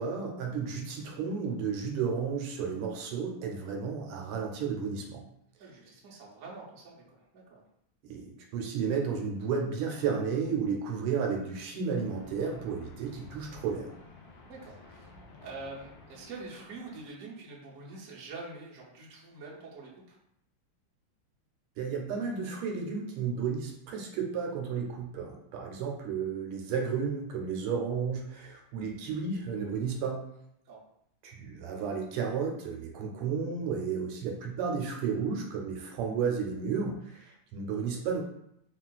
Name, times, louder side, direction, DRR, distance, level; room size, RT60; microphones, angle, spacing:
voice 1, 0.0-5.2 8.0-13.9 21.8-30.2 31.2-38.2, right 6 dB, 85° right, 1 dB, 1.5 m, -33 dB
voice 2, 5.6-7.6 14.5-15.1 15.4-20.2 30.7-30.8, right 3 dB, 65° right, -4 dB, 0.8 m, -45 dB
sound 1, 12.0-17.1, left 2 dB, 75° left, 1.2 m, -52 dB
3.5 x 2.4 x 2.3 m, 0.74 s
omnidirectional pair, 2.4 m